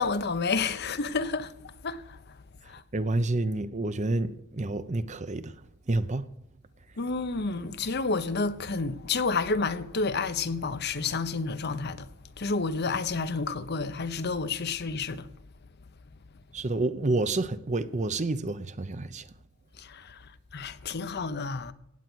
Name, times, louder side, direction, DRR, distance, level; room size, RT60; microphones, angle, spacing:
voice 1, 0.0-2.4 2.7-2.8 7.0-12.1 12.4-15.3 19.8-21.7, left 4 dB, 55° left, 0.8 m, -30 dB
voice 2, 2.9-5.5 5.9-6.3 16.5-19.3, right 2 dB, 35° right, 0.7 m, -29 dB
16.5 x 8.4 x 6.2 m
head